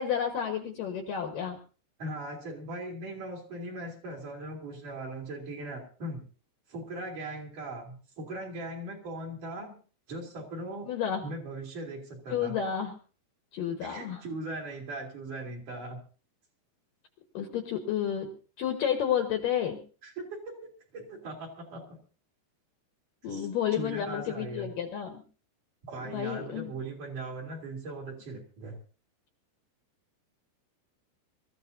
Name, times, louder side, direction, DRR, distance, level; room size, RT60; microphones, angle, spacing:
voice 1, 0.0-1.6 10.9-11.2 12.3-12.9 13.5-14.2 17.3-18.3 18.6-19.8 23.2-25.2 26.0-26.7, left 9 dB, 65° left, 5 dB, 2.5 m, -31 dB
voice 2, 2.0-6.2 6.7-9.7 10.1-10.9 11.2-12.5 13.8-16.0 20.0-20.6 20.9-22.0 23.3-24.7 25.9-28.8, right 2 dB, 45° right, -1 dB, 4.3 m, -39 dB
24.5 x 14.5 x 2.7 m, 0.38 s
omnidirectional pair, 5.1 m